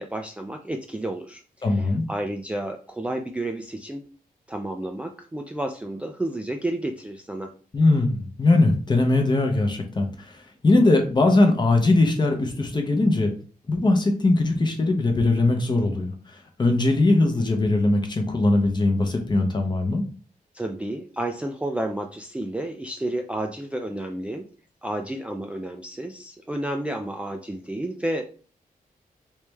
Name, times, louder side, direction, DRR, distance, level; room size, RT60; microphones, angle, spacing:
voice 1, 0.0-1.4 1.7-4.0 4.5-7.5 20.5-24.5 24.8-28.2, right 1 dB, 10° right, 3 dB, 0.3 m, -31 dB
voice 2, 1.6-2.0 7.7-13.3 13.7-20.0, left 2 dB, 30° left, 4 dB, 0.7 m, -21 dB
3.2 x 3.1 x 3.3 m, 0.38 s
wide cardioid pair, 155°, 15 cm